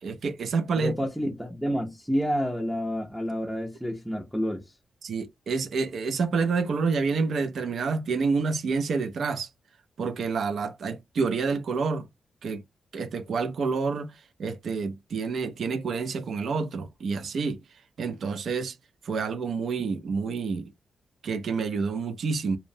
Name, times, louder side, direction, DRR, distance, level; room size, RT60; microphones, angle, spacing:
voice 1, 0.0-0.9 5.0-9.5 10.0-12.1 12.4-12.6 12.9-14.1 14.4-17.6 18.0-18.8 19.0-20.7 21.2-22.6, right 4 dB, 65° right, 0.4 m, -28 dB
voice 2, 0.7-4.7, equal, ahead, 0.5 m, -29 dB
2.6 x 2.0 x 2.6 m
wide cardioid pair, 120°, 0 cm